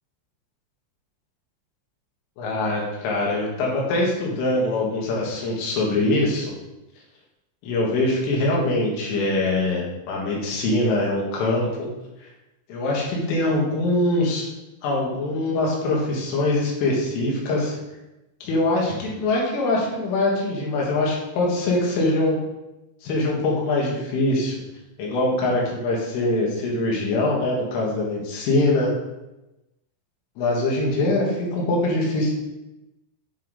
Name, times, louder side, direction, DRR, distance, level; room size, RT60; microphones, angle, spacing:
voice 1, 2.4-6.5 7.6-11.9 12.7-14.5 14.8-17.8 18.4-22.4 23.0-24.6 25.0-28.9 30.4-32.3, left 2 dB, 85° left, -3 dB, 4.2 m, -23 dB
9.5 x 4.7 x 3.9 m, 0.98 s
omnidirectional pair, 5.6 m